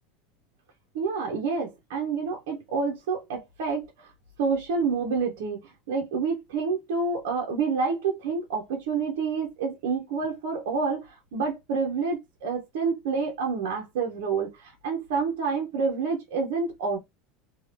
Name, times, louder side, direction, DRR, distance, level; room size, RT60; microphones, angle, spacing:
voice 1, 0.9-4.1 4.4-17.0, right 5 dB, 80° right, 0.9 m, -28 dB
2.7 x 2.4 x 3.3 m
supercardioid pair, 120°, 0 cm